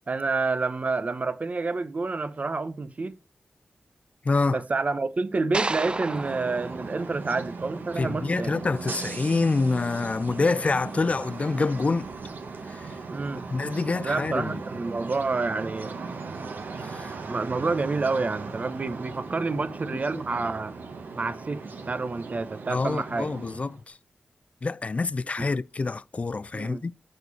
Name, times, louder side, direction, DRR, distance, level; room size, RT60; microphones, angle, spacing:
voice 1, 0.1-3.2 4.5-8.6 13.1-13.5 14.0-16.0 17.3-20.7 21.1-23.3 25.4-25.5 26.5-26.8, right 3 dB, 50° right, 1.0 m, -28 dB
voice 2, 4.2-4.6 8.0-12.1 12.7-12.9 13.5-14.6 16.8-17.1 22.7-24.0 24.6-26.9, left 3 dB, 45° left, 0.4 m, -26 dB
sound 1, 5.5-7.9, right 2 dB, 30° right, 0.4 m, -33 dB
sound 2, 5.8-23.8, right 4 dB, 85° right, 1.6 m, -38 dB
6.8 x 6.4 x 4.2 m
cardioid pair, 55°, 3 cm